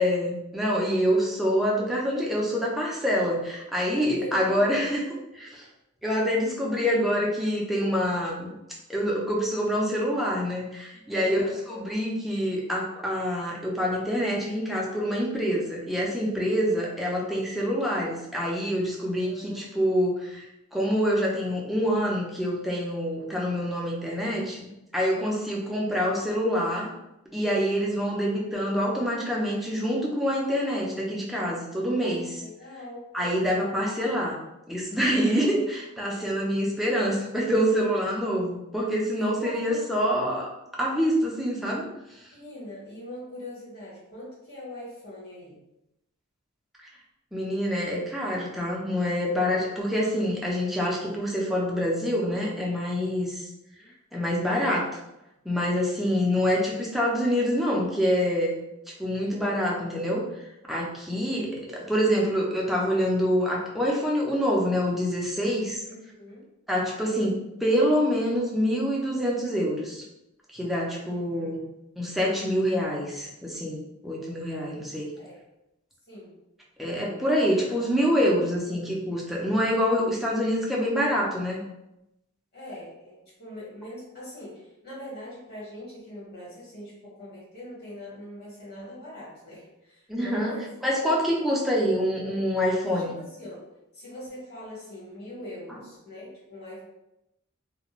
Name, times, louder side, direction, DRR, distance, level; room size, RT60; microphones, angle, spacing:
voice 1, 0.0-5.6 6.0-8.5 8.9-11.4 11.7-26.9 27.3-32.4 33.1-34.4 34.7-40.5 40.8-42.3 47.3-53.5 54.1-54.9 55.4-58.6 59.0-60.4 60.7-65.8 66.7-70.0 70.5-71.6 72.0-75.1 76.8-81.6 90.1-90.5 90.8-93.1, equal, ahead, -4 dB, 0.5 m, -26 dB
voice 2, 4.1-5.0 11.1-11.6 19.2-19.9 25.1-25.7 31.8-33.1 33.4-33.9 35.1-35.6 39.1-39.6 39.9-40.1 42.3-45.6 53.7-53.9 65.8-66.4 71.1-71.6 75.1-75.4 76.1-76.3 77.5-77.8 82.5-90.6 91.1-91.2 92.8-93.6 93.9-96.8, left 1 dB, 50° left, -7 dB, 1.4 m, -42 dB
2.4 x 2.2 x 3.0 m, 0.89 s
head